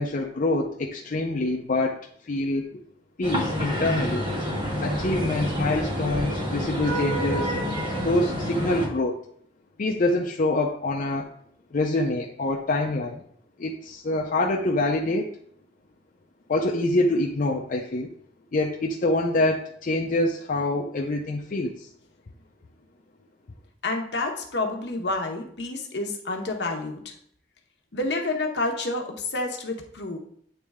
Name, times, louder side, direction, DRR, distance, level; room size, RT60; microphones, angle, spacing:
voice 1, 0.0-2.7 3.2-4.2 4.8-7.5 7.9-9.2 9.8-11.3 11.7-13.2 13.6-15.3 16.5-18.1 18.5-21.9, left 2 dB, 50° left, 0 dB, 0.5 m, -25 dB
sound 1, 3.2-8.9, equal, 30° right, 1.5 m, -28 dB
voice 2, 23.8-27.1 27.9-30.2, left 2 dB, 70° left, 2 dB, 1.0 m, -29 dB
8.8 x 3.2 x 3.5 m, 0.65 s
head